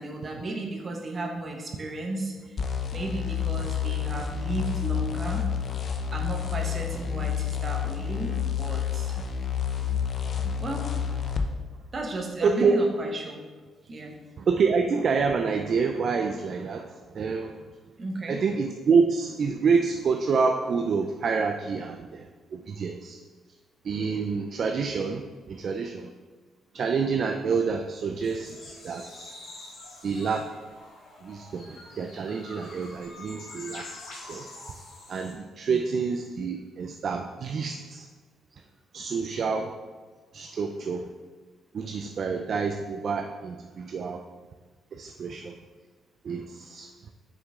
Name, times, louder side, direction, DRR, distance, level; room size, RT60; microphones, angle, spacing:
voice 1, 0.0-2.6 2.9-5.4 6.1-9.2 10.6-10.9 11.9-13.4 13.9-14.2 18.0-18.4 35.7-35.8, right 2 dB, 35° right, 2 dB, 1.3 m, -34 dB
sound 1, 2.6-11.5, left 8 dB, 50° left, 0.7 m, -29 dB
voice 2, 12.4-12.8 14.4-17.6 18.3-23.2 23.8-25.2 25.5-26.1 26.7-29.3 30.0-30.5 31.2-33.9 34.1-34.4 35.1-38.1 38.9-39.7 40.3-41.1 41.7-44.2 44.9-45.5 46.2-46.9, right 5 dB, 55° right, 5 dB, 0.4 m, -27 dB
sound 2, 28.1-35.3, left 2 dB, 70° left, 2.2 m, -45 dB
6.5 x 6.0 x 3.6 m, 1.4 s
cardioid pair, 90°, 0 cm